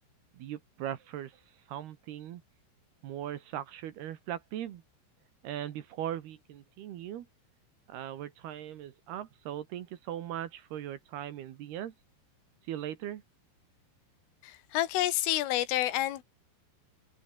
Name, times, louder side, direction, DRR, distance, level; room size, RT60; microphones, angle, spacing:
voice 1, 0.3-1.4 1.7-2.4 3.0-4.8 5.4-7.3 7.9-11.9 12.7-13.2, right 11 dB, 65° right, 3.0 m, -39 dB
voice 2, 14.4-16.2, left 14 dB, 90° left, 4.1 m, -29 dB
open air
omnidirectional pair, 5.6 m